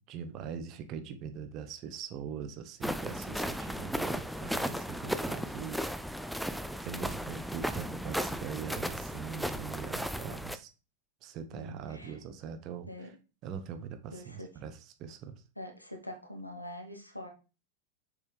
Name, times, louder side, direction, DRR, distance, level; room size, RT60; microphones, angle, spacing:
voice 1, 0.1-5.8 6.8-10.7 11.2-12.9 13.4-15.4, right 7 dB, 35° right, 8 dB, 0.9 m, -42 dB
sound 1, 2.8-10.6, equal, ahead, 0.4 m, -35 dB
voice 2, 11.5-12.2 12.9-13.1 14.1-14.5 15.6-17.3, left 1 dB, 85° left, 4 dB, 1.2 m, -44 dB
6.5 x 5.6 x 3.3 m, 0.33 s
figure-of-eight pair, 90°, 0 cm